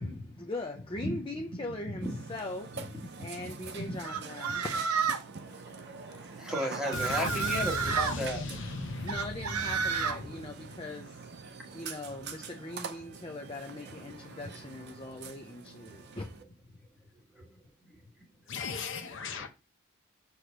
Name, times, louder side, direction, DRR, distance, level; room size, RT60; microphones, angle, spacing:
voice 1, 0.0-4.7 9.0-16.3, left 2 dB, 25° left, 0.6 m, -41 dB
voice 2, 1.8-2.2 3.2-3.4 3.8-4.0 5.5-8.4 14.2-14.4 17.3-17.4 19.3-19.5, equal, 5° right, 1.5 m, -35 dB
Burping eructation, 2.0-16.4, right 5 dB, 50° right, 0.6 m, -46 dB
sound 1, 4.0-5.3 6.5-8.2 9.1-10.2, right 6 dB, 80° right, 0.9 m, -31 dB
voice 3, 6.9-10.7 18.5-19.5, left 3 dB, 55° left, 0.7 m, -37 dB
6.3 x 3.2 x 5.0 m
head